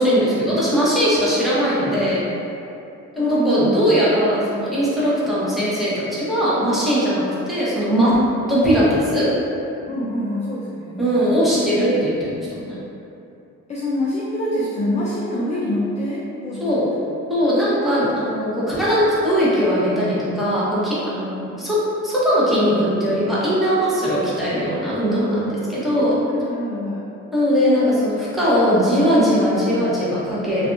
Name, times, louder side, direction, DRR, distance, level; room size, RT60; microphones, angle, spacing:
voice 1, 0.0-2.2 3.2-8.1 8.5-9.3 11.0-12.8 16.6-16.9 17.3-21.8 22.0-26.2 27.3-30.7, equal, ahead, -10 dB, 0.8 m, -19 dB
voice 2, 3.2-3.8 9.9-11.4 13.7-17.1 26.3-27.0, left 1 dB, 25° left, -6 dB, 0.4 m, -26 dB
2.6 x 2.3 x 2.4 m, 2.7 s
cardioid pair, 90°, 30 cm